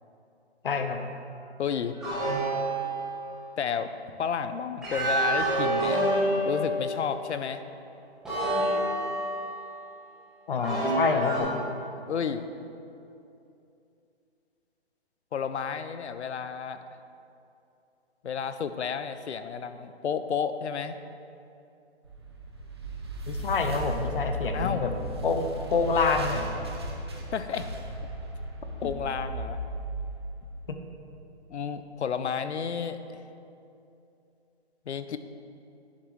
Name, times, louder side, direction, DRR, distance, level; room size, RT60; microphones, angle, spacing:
voice 1, 0.6-1.0 10.5-11.6 23.3-24.9 25.2-26.5 30.7-30.8, left 4 dB, 50° left, 6 dB, 0.8 m, -27 dB
voice 2, 1.6-2.0 3.6-3.9 4.2-6.1 6.4-7.6 12.1-12.4 15.3-16.8 18.2-21.0 24.5-24.9 27.3-27.7 28.8-29.6 31.5-33.2 34.9-35.2, left 7 dB, 80° left, 11 dB, 0.7 m, -31 dB
sound 1, 2.0-3.4 4.8-7.2 8.3-9.7 10.6-11.4, right 1 dB, ahead, 0.9 m, -28 dB
sound 2, 22.0-31.2, right 1 dB, 25° right, 0.5 m, -36 dB
10.5 x 7.3 x 3.1 m, 2.7 s
hypercardioid pair, 170°, 34 cm